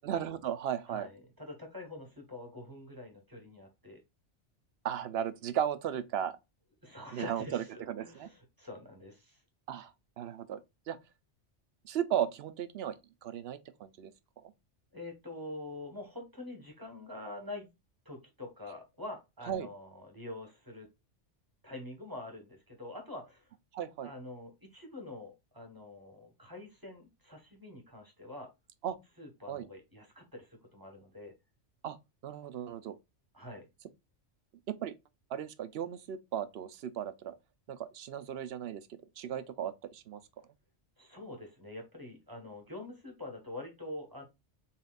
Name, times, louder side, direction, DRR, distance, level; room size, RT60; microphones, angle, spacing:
voice 1, 0.0-1.1 4.8-6.3 7.1-8.3 9.7-10.6 10.9-11.0 11.8-14.1 19.5-19.7 23.7-24.1 28.8-29.0 29.5-29.7 31.8-32.0 32.2-33.0 34.7-34.9 35.3-37.3 37.7-40.2, right 9 dB, 65° right, 0.8 m, -36 dB
voice 2, 0.9-4.0 6.8-9.4 14.9-17.7 18.0-20.9 21.6-23.5 24.0-28.5 29.2-31.3 33.3-33.7 41.0-44.2, left 2 dB, 20° right, 1.2 m, -45 dB
4.1 x 4.1 x 2.4 m
omnidirectional pair, 1.2 m